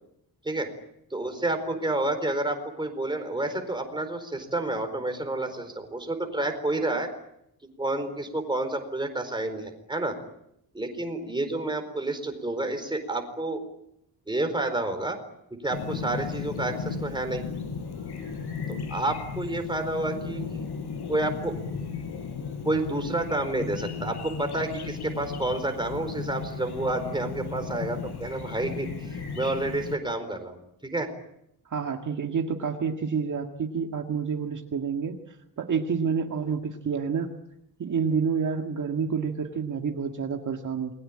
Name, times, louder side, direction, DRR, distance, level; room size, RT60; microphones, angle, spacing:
voice 1, 1.1-7.1 7.8-10.1 10.7-13.6 14.3-15.2 15.6-17.4 18.7-20.4 21.1-21.5 22.6-30.6 30.8-31.1, right 2 dB, 10° right, 6 dB, 4.4 m, -29 dB
Chirp tweet, 15.7-29.9, left 5 dB, 90° left, 5.6 m, -35 dB
voice 2, 31.7-37.3 37.8-40.9, right 6 dB, 50° right, 3 dB, 1.9 m, -29 dB
28.5 x 22.0 x 8.8 m, 0.80 s
wide cardioid pair, 165°, 38 cm